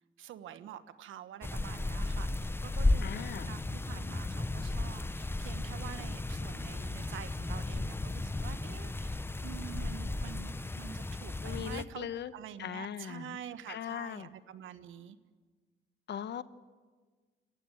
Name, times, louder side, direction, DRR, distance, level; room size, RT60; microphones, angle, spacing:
voice 1, 0.2-15.2, right 9 dB, 80° right, 11 dB, 1.3 m, -47 dB
sound 1, 1.4-11.9, left 2 dB, 10° left, 0.7 m, -34 dB
voice 2, 3.0-3.5 11.4-12.3 12.6-13.4 13.7-14.3 16.1-16.4, left 9 dB, 60° left, 14 dB, 1.0 m, -39 dB
27.0 x 15.0 x 9.2 m, 1.5 s
cardioid pair, 90°, 20 cm